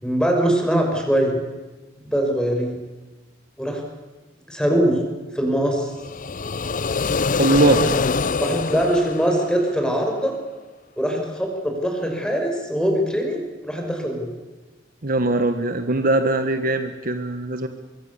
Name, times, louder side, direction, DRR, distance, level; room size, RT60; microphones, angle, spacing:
voice 1, 0.0-1.4 2.0-2.8 3.6-3.8 4.5-5.0 5.3-5.9 8.4-10.4 11.0-14.3, equal, 5° left, 2 dB, 5.9 m, -22 dB
sound 1, 6.0-10.0, left 4 dB, 45° left, 0.7 m, -24 dB
voice 2, 7.4-7.9 15.0-17.7, right 2 dB, 50° right, 8 dB, 1.5 m, -20 dB
24.5 x 23.0 x 7.1 m, 1.2 s
head